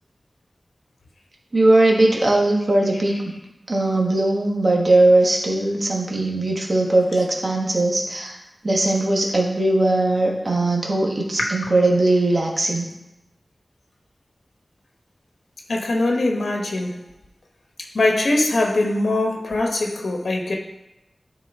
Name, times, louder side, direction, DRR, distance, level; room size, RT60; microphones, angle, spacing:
voice 1, 1.5-3.3 3.7-8.4 8.6-12.8, right 2 dB, 45° right, -1 dB, 1.4 m, -19 dB
voice 2, 15.7-17.0 17.9-20.6, left 2 dB, 90° left, 0 dB, 1.1 m, -22 dB
12.0 x 4.4 x 3.6 m, 0.93 s
wide cardioid pair, 85°, 0 cm